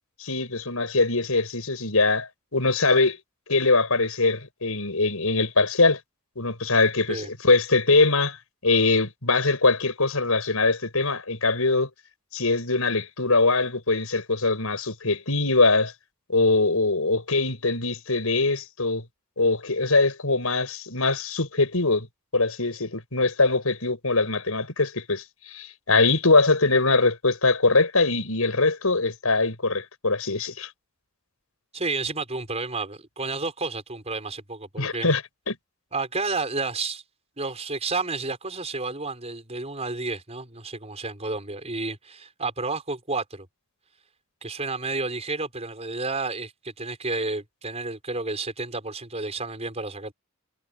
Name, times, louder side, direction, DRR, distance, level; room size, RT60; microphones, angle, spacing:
voice 1, 0.2-3.2 3.5-6.0 6.4-8.4 8.6-11.9 12.3-15.9 16.3-19.0 19.4-22.1 22.3-30.7 34.8-35.2 35.5-35.6, left 3 dB, 80° left, 5.4 m, -22 dB
voice 2, 31.7-35.1 35.9-37.0 37.4-43.5 44.4-50.1, right 3 dB, 30° right, 5.4 m, -31 dB
head